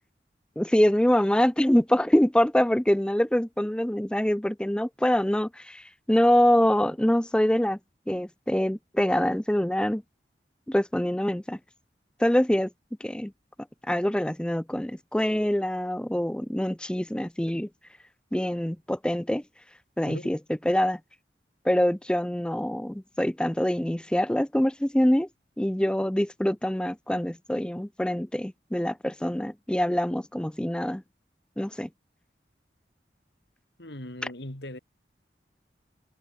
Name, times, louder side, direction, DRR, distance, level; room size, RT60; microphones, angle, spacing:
voice 1, 0.6-7.8 8.1-10.0 10.7-11.6 12.2-12.7 13.0-13.3 13.9-17.7 18.3-19.4 20.0-20.4 20.7-21.0 21.6-25.3 25.6-31.0 31.6-31.9, equal, 5° left, 0.4 m, -25 dB
voice 2, 33.8-34.8, left 1 dB, 80° left, 3.6 m, -39 dB
head